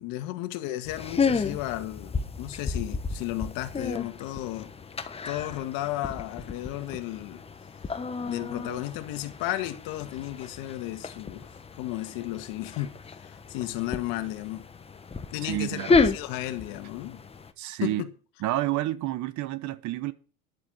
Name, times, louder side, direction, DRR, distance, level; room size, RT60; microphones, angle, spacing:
voice 1, 0.0-4.7 5.3-7.4 8.2-11.5 11.8-14.7 15.3-17.2 17.8-18.1, left 15 dB, 55° left, 1.8 m, -34 dB
sound 1, 0.8-17.5, left 4 dB, 15° left, 1.1 m, -32 dB
voice 2, 15.4-16.0 17.6-18.0 18.4-20.1, right 15 dB, 45° right, 1.0 m, -29 dB
11.0 x 7.6 x 7.8 m
supercardioid pair, 115°, 41 cm